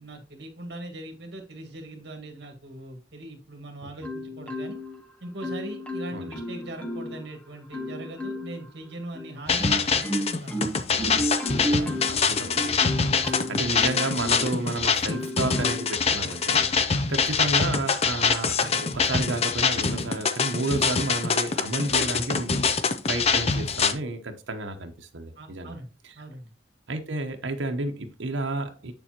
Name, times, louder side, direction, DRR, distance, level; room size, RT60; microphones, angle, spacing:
voice 1, 0.0-4.8 5.2-10.7 11.7-12.0 13.0-13.6 16.9-17.0 25.4-25.9 26.2-26.5, right 1 dB, 65° right, 1.7 m, -40 dB
Marimba xylophone, 4.0-5.0 5.4-7.2 7.7-8.6 9.1-14.6 15.1-16.0 16.5-16.8, equal, 5° left, 1.0 m, -33 dB
sound 1, 9.5-23.9, left 5 dB, 35° left, 0.5 m, -24 dB
voice 2, 12.1-13.0 13.3-16.6 17.1-22.6 23.1-25.7 26.9-28.9, right 2 dB, 85° right, 0.9 m, -31 dB
8.1 x 6.9 x 2.9 m
head